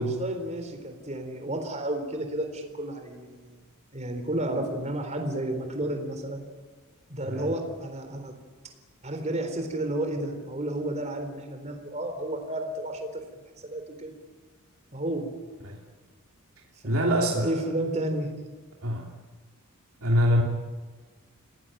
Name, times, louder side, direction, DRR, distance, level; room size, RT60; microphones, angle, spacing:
voice 1, 0.0-3.6 3.9-6.4 7.1-8.3 9.0-13.2 13.6-14.1 14.9-15.3 16.8-18.3, right 1 dB, 30° right, 5 dB, 3.8 m, -32 dB
voice 2, 16.8-17.5 18.8-19.1 20.0-20.4, equal, 70° right, 0 dB, 3.0 m, -24 dB
27.5 x 18.5 x 9.2 m, 1.4 s
head